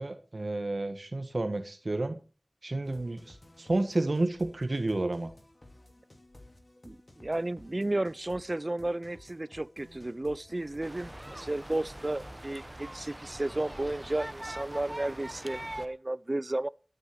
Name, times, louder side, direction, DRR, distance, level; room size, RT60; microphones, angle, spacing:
voice 1, 0.0-2.2 2.6-5.3, right 2 dB, 70° right, 1.4 m, -31 dB
sound 1, 2.8-12.7, left 1 dB, 50° left, 2.8 m, -55 dB
voice 2, 6.8-16.7, right 2 dB, 45° right, 0.5 m, -33 dB
sound 2, 10.8-15.9, right 1 dB, 25° right, 1.4 m, -42 dB
13.5 x 9.6 x 4.8 m
wide cardioid pair, 50°, 0 cm